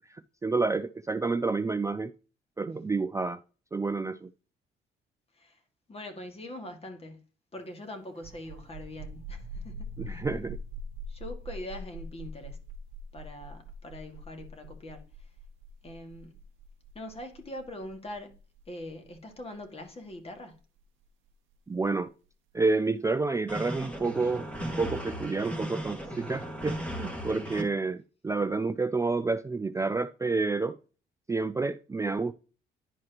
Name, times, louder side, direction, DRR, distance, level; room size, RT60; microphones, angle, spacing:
voice 1, 0.1-2.1 2.6-3.4 3.7-4.3 10.0-10.6 21.7-22.1 22.5-30.8 31.3-32.3, right 3 dB, 15° right, 0.4 m, -29 dB
voice 2, 5.9-7.2 7.5-10.2 11.1-12.6 13.1-15.0 15.8-16.3 16.9-18.4 18.7-20.5, left 1 dB, 30° left, 1.9 m, -42 dB
sound 1, 8.1-21.5, right 1 dB, 85° right, 0.5 m, -43 dB
sound 2, 23.5-27.6, equal, 5° left, 1.9 m, -37 dB
11.0 x 4.7 x 2.9 m
cardioid pair, 90°, 20 cm